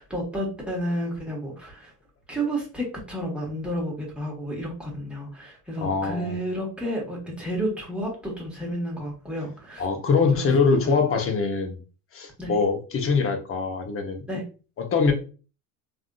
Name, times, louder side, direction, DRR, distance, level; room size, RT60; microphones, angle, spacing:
voice 1, 0.0-1.9 2.3-9.8 10.2-10.5 10.8-10.9 12.4-12.5 14.3-14.4, equal, ahead, 1.3 m, -31 dB
voice 2, 5.8-6.4 9.8-11.8 12.1-14.2 14.8-15.1, left 4 dB, 30° left, 0.8 m, -23 dB
3.4 x 2.6 x 2.3 m
supercardioid pair, 100°, 45 cm